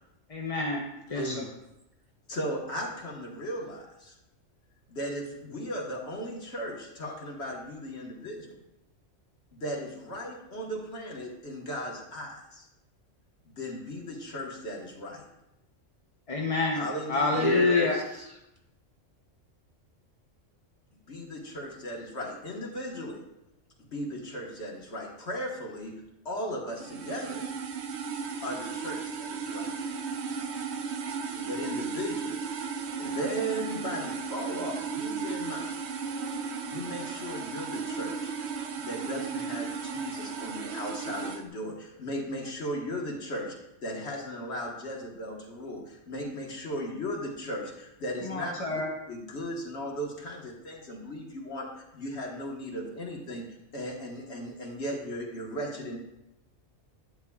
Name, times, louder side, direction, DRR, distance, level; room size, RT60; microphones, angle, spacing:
voice 1, 0.3-1.4 16.3-16.8 17.1-18.0 48.3-48.9, left 3 dB, 35° left, 0 dB, 0.6 m, -27 dB
voice 2, 1.1-1.5 17.3-18.4, equal, 20° right, -2 dB, 1.4 m, -31 dB
voice 3, 2.3-4.1 4.9-8.6 9.5-12.7 13.5-15.2 16.7-17.4 21.1-23.2 23.8-25.9 26.2-27.4 28.4-29.7 31.3-32.4 33.0-35.7 36.6-38.3 38.8-48.8 49.1-51.7 51.9-53.4 53.7-56.0, equal, 60° left, -1 dB, 1.7 m, -36 dB
sound 1, 26.7-41.4, right 5 dB, 60° right, 0.9 m, -35 dB
11.0 x 9.4 x 2.3 m, 0.89 s
omnidirectional pair, 1.3 m